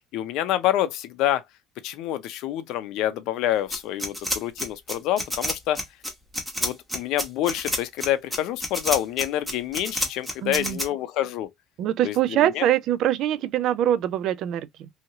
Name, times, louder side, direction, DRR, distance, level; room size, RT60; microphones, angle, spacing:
voice 1, 0.1-1.4 1.8-5.8 6.6-11.5 12.0-12.7, left 12 dB, 65° left, 0.5 m, -27 dB
sound 1, 3.7-10.9, equal, 5° right, 0.9 m, -28 dB
voice 2, 10.4-10.8 11.8-14.9, right 12 dB, 55° right, 0.3 m, -24 dB
2.8 x 2.8 x 2.7 m
cardioid pair, 150°, 0 cm